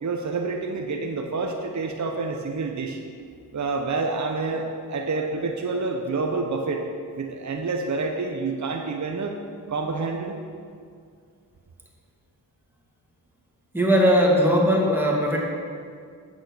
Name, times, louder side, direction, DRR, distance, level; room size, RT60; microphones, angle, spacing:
voice 1, 0.0-3.0 3.5-6.8 7.2-9.4 9.7-10.3, right 3 dB, 45° right, 2 dB, 1.0 m, -28 dB
voice 2, 13.7-15.4, equal, 5° right, -2 dB, 2.3 m, -19 dB
8.0 x 6.1 x 6.6 m, 2.2 s
cardioid pair, 50°, 42 cm